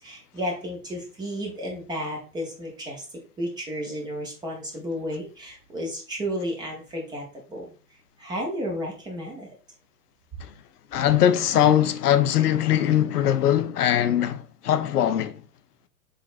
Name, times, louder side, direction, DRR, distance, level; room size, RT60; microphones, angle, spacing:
voice 1, 0.0-3.0 3.4-7.2 7.5-7.7 8.2-9.5, equal, 10° right, 0.5 m, -32 dB
voice 2, 10.9-15.4, left 10 dB, 70° left, 0.5 m, -21 dB
3.8 x 3.4 x 2.4 m
figure-of-eight pair, 105°, 47 cm